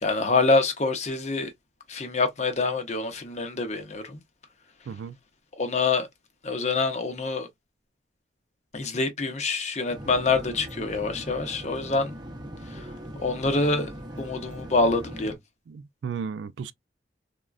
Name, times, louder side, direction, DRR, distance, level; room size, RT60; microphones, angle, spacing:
voice 1, 0.0-1.5 1.9-4.2 5.6-6.1 6.4-7.5 8.7-12.1 12.7-12.9 13.2-13.9 14.2-15.4, left 3 dB, 40° left, 0.6 m, -26 dB
voice 2, 4.9-5.2 15.7-16.7, right 6 dB, 85° right, 0.3 m, -34 dB
sound 1, 9.9-15.4, equal, 25° right, 0.6 m, -40 dB
3.5 x 2.2 x 2.3 m
head